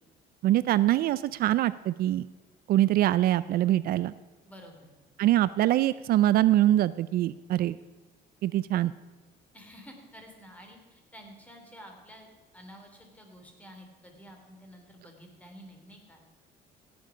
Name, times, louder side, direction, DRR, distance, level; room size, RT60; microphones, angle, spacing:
voice 1, 0.4-2.3 2.7-4.1 5.2-7.8 8.4-8.9, right 14 dB, 65° right, 17 dB, 0.4 m, -24 dB
voice 2, 4.5-4.9 9.5-12.3 12.5-16.3, equal, 10° left, 2 dB, 3.1 m, -50 dB
16.5 x 9.0 x 5.0 m, 1.3 s
cardioid pair, 110°, 17 cm